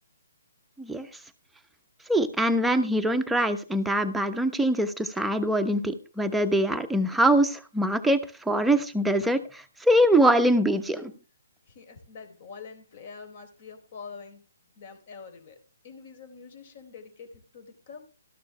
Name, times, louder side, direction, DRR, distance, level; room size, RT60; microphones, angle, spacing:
voice 1, 2.1-8.2 8.5-11.1, right 1 dB, 5° right, 5 dB, 1.1 m, -23 dB
voice 2, 11.7-14.4 14.8-15.6 15.8-18.1, left 5 dB, 45° left, 7 dB, 3.9 m, -45 dB
13.5 x 12.0 x 3.5 m, 0.32 s
figure-of-eight pair, 140°, 0 cm